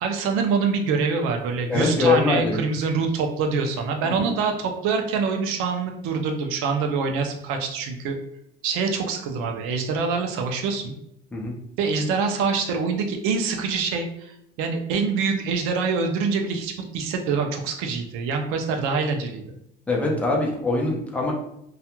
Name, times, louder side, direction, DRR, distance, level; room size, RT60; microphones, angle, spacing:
voice 1, 0.0-8.2 8.6-10.9 11.8-19.6, right 5 dB, 85° right, 3 dB, 0.5 m, -25 dB
voice 2, 1.7-2.6 4.0-4.3 11.3-11.5 19.9-21.3, left 3 dB, 5° left, -2 dB, 0.4 m, -23 dB
2.3 x 2.1 x 2.9 m, 0.77 s
cardioid pair, 155°, 21 cm